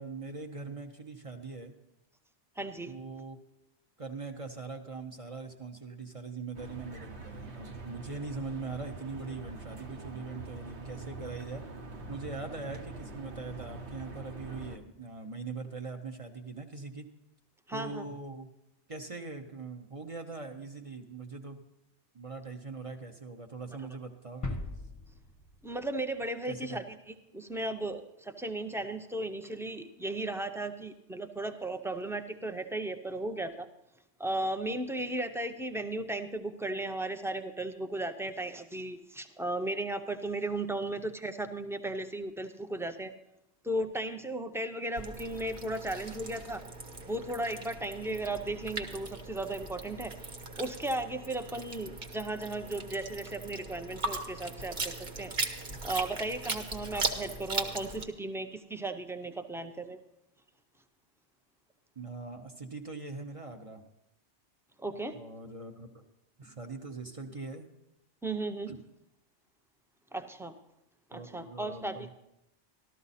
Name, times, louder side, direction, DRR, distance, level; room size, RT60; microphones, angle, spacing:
voice 1, 0.0-1.7 2.9-3.4 4.0-11.6 12.1-17.1 17.7-18.5 18.9-21.6 22.1-24.6 26.5-26.8 62.0-63.8 65.1-66.0 66.4-67.7 68.7-68.8 71.1-72.1, right 3 dB, 35° right, 4 dB, 0.8 m, -41 dB
voice 2, 2.6-2.9 17.7-18.0 25.6-33.7 34.2-43.1 43.6-46.6 47.1-50.1 50.6-55.3 55.8-60.0 64.8-65.2 66.4-66.5 68.2-68.7 70.1-70.6 71.1-72.1, right 2 dB, 5° right, 7 dB, 0.3 m, -35 dB
sound 1, 6.5-14.8, right 3 dB, 70° right, 1.2 m, -44 dB
sound 2, 24.4-26.3 26.5-26.6, left 2 dB, 20° left, 0.8 m, -40 dB
sound 3, 45.0-58.1, right 3 dB, 50° right, 1.2 m, -39 dB
13.5 x 12.5 x 4.2 m, 0.86 s
omnidirectional pair, 1.2 m